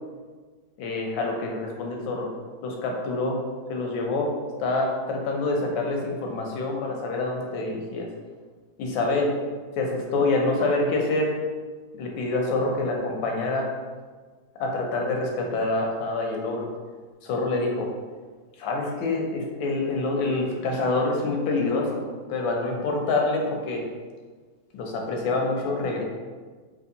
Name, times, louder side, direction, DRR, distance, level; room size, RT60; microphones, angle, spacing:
voice 1, 0.8-2.3 2.6-3.4 3.7-4.3 4.6-8.1 8.8-9.3 9.8-11.3 11.9-13.7 14.6-16.7 17.2-17.9 18.6-22.0 22.3-23.9 24.7-26.0, left 2 dB, 85° left, 1 dB, 1.4 m, -26 dB
3.5 x 3.0 x 2.7 m, 1.4 s
omnidirectional pair, 2.1 m